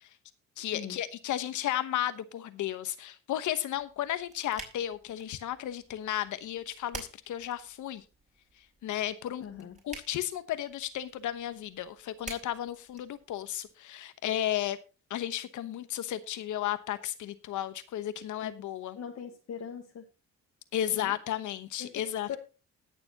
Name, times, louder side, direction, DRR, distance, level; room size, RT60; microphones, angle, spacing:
voice 1, 0.6-8.0 8.8-9.4 9.8-14.8 15.1-19.0 20.7-22.4, left 12 dB, 75° left, 12 dB, 1.1 m, -34 dB
sound 1, 3.8-13.7, right 3 dB, 25° right, 4.0 m, -50 dB
voice 2, 9.4-9.8 18.4-18.5 18.9-20.1 20.9-21.1 21.8-22.4, left 8 dB, 55° left, 2 dB, 1.3 m, -41 dB
20.0 x 6.9 x 2.9 m, 0.32 s
cardioid pair, 90°, 30 cm